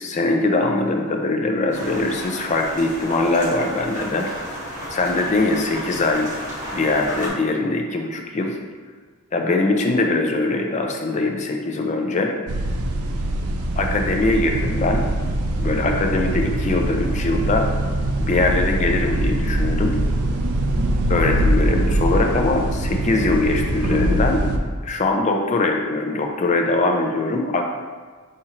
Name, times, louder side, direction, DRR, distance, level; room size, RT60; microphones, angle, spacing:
voice 1, 0.0-4.3 4.9-6.3 6.7-8.6 9.3-12.3 13.8-15.1 15.6-17.7 18.2-20.0 21.1-24.5 24.8-27.6, left 2 dB, 35° left, 2 dB, 0.4 m, -22 dB
sound 1, 1.7-7.3, equal, 35° right, 1.1 m, -33 dB
sound 2, 12.5-24.6, right 1 dB, 85° right, 0.4 m, -22 dB
4.3 x 4.2 x 2.4 m, 1.5 s
head